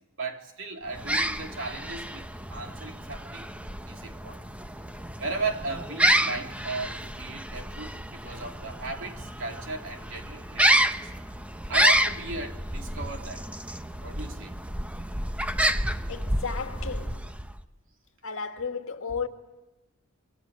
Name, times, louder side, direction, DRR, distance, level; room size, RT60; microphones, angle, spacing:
voice 1, 0.2-3.6 3.9-4.4 5.2-11.2 11.7-13.5 14.0-14.5, right 3 dB, 60° right, 3.3 m, -36 dB
sound 1, 0.9-17.6, right 1 dB, 5° right, 0.9 m, -29 dB
voice 2, 16.1-17.3 18.2-19.3, left 5 dB, 65° left, 2.1 m, -34 dB
29.0 x 23.5 x 8.4 m
head